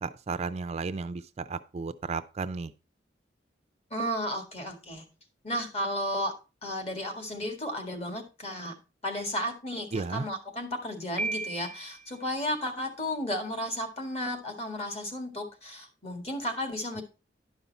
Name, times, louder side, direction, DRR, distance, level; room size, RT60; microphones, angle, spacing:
voice 1, 0.0-2.7 9.9-10.3, right 4 dB, 40° right, 0.4 m, -34 dB
voice 2, 3.9-5.1 5.4-6.3 6.6-8.7 9.0-17.0, equal, 35° left, 1.8 m, -33 dB
Piano, 11.2-12.1, right 3 dB, 10° left, 0.7 m, -34 dB
11.0 x 5.6 x 3.9 m
head